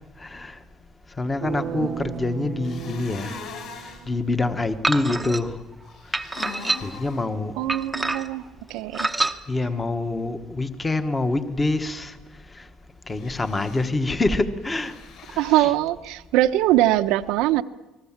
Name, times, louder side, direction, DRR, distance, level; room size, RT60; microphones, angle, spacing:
voice 1, 0.2-0.5 1.2-3.4 4.1-5.6 6.8-7.5 9.5-12.1 13.1-14.9 15.3-15.7, left 2 dB, 10° left, 9 dB, 1.2 m, -26 dB
sound 1, 1.4-4.4, right 10 dB, 40° right, 0.9 m, -35 dB
sound 2, 2.6-4.0 5.8-7.2 13.1-13.9 14.6-15.7, left 5 dB, 50° left, 5.5 m, -41 dB
sound 3, 4.8-5.4 6.1-7.1 7.7-8.4 8.9-9.4, right 2 dB, 5° right, 0.9 m, -26 dB
voice 2, 7.6-9.1 15.4-17.6, right 15 dB, 70° right, 12 dB, 0.9 m, -22 dB
29.0 x 20.0 x 7.3 m, 1.0 s
cardioid pair, 175°, 0 cm